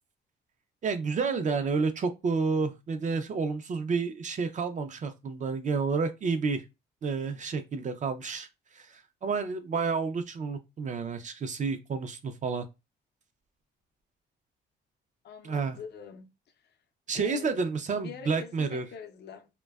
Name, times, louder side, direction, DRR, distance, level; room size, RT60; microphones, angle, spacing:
voice 1, 0.8-6.6 7.0-8.5 8.7-12.7 15.4-15.8 17.1-18.8, right 4 dB, 40° right, 0.4 m, -30 dB
voice 2, 15.2-16.3 16.6-16.8 17.2-17.6 17.9-19.5, left 7 dB, 60° left, 0.5 m, -44 dB
2.6 x 2.2 x 2.2 m
cardioid pair, 90°, 20 cm